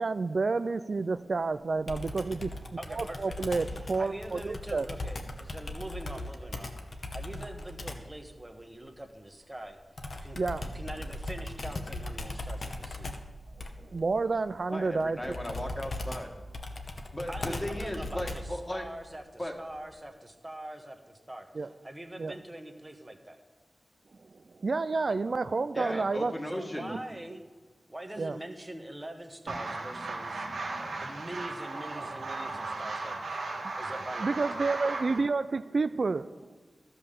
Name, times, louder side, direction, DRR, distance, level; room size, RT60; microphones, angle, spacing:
voice 1, 0.0-2.6 2.9-4.9 10.4-10.7 13.8-15.4 21.5-21.7 22.2-22.4 24.6-26.3 28.2-28.4 34.2-36.6, right 3 dB, 55° right, 12 dB, 0.3 m, -30 dB
Computer keyboard, 1.9-8.1 10.0-18.6, left 2 dB, 60° left, 1.1 m, -39 dB
voice 2, 2.8-6.7 7.1-9.8 10.1-10.4 10.7-13.1 17.3-23.4 25.2-25.3 25.8-26.0 26.5-27.4 27.9-30.5 31.0-33.2 33.7-34.8, right 1 dB, 20° right, 5 dB, 1.2 m, -43 dB
voice 3, 14.7-16.4 17.1-18.9 19.4-19.5 25.7-27.0, left 1 dB, 20° left, 2 dB, 1.6 m, -36 dB
sound 1, 29.5-35.2, right 3 dB, 90° right, 1.5 m, -36 dB
12.5 x 5.6 x 6.7 m, 1.4 s
wide cardioid pair, 75°, 0 cm